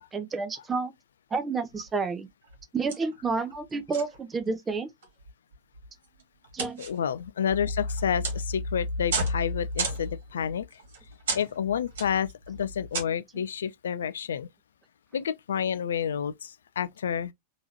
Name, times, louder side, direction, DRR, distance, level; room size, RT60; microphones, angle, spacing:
voice 1, 0.1-0.9 1.3-2.3 2.7-4.9 6.5-6.8, right 4 dB, 15° right, 0.7 m, -30 dB
sound 1, 1.7-2.1 2.4-2.6 2.9-3.6 3.9-4.5 5.0-13.0, right 1 dB, 60° right, 1.9 m, -33 dB
voice 2, 6.8-10.8 11.3-14.5 15.1-17.3, left 8 dB, 65° left, 0.3 m, -30 dB
3.6 x 3.0 x 2.8 m
figure-of-eight pair, 90°, 0 cm